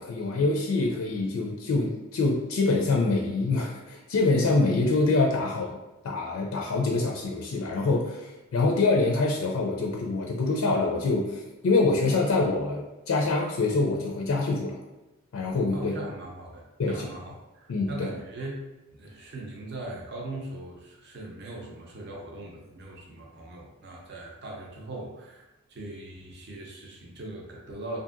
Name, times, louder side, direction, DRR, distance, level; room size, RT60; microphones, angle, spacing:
voice 1, 0.0-5.8 6.0-14.8 15.3-15.9 16.8-17.1 17.7-18.1, left 3 dB, 80° left, 0 dB, 0.4 m, -25 dB
voice 2, 15.7-18.6 18.9-28.0, right 2 dB, 50° right, -2 dB, 0.6 m, -40 dB
2.7 x 2.5 x 2.5 m, 1.0 s
head